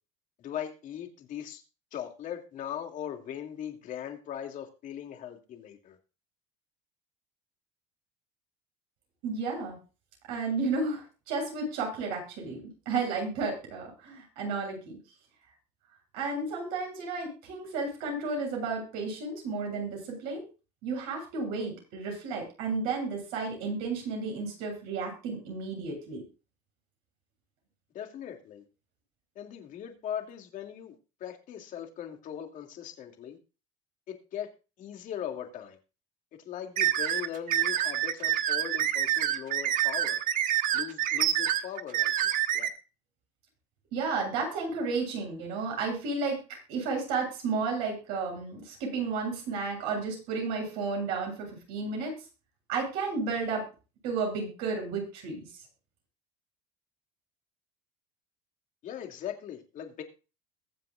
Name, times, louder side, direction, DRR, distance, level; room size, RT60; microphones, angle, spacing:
voice 1, 0.4-1.6 1.9-6.0 27.9-28.6 29.4-33.4 34.1-34.5 34.8-35.8 36.5-40.2 40.7-42.7 58.8-60.0, left 9 dB, 55° left, 4 dB, 2.7 m, -39 dB
voice 2, 9.2-9.8 10.3-15.0 16.1-20.4 20.8-26.2 43.9-46.4 46.7-52.1 52.7-53.6 54.0-55.4, right 4 dB, 75° right, 0 dB, 7.9 m, -32 dB
sound 1, 36.8-42.7, right 12 dB, 60° right, 1.4 m, -27 dB
22.0 x 7.6 x 2.5 m, 0.32 s
supercardioid pair, 85°, 16 cm